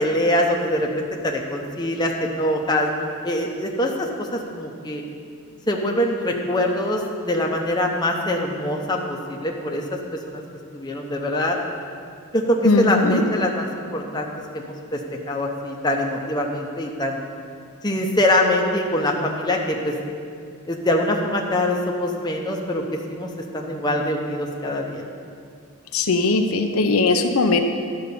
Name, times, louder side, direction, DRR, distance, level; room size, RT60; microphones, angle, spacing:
voice 1, 0.0-2.9 3.2-5.0 5.7-10.4 10.7-11.6 12.3-15.0 15.3-17.2 17.8-19.9 20.7-25.1, left 1 dB, 20° left, 0 dB, 0.8 m, -24 dB
voice 2, 12.6-13.2 25.9-27.6, left 3 dB, 75° left, 6 dB, 0.6 m, -19 dB
11.5 x 5.3 x 6.9 m, 2.3 s
head